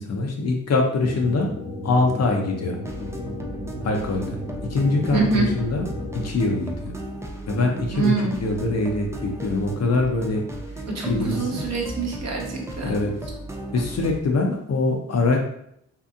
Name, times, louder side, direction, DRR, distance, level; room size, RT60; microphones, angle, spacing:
voice 1, 0.0-1.5 1.8-2.8 3.8-4.4 4.7-5.9 6.1-6.9 7.5-8.1 8.4-10.4 11.1-11.6 12.8-13.1 13.7-15.4, left 3 dB, 40° left, 1 dB, 0.6 m, -23 dB
sound 1, 1.0-6.3, left 2 dB, 75° left, 1.2 m, -34 dB
sound 2, 2.8-14.2, right 1 dB, 10° right, 0.4 m, -35 dB
voice 2, 5.1-5.5 7.9-8.4 10.9-12.9, right 4 dB, 45° right, 0 dB, 0.9 m, -25 dB
2.7 x 2.4 x 2.4 m, 0.72 s
supercardioid pair, 60°, 38 cm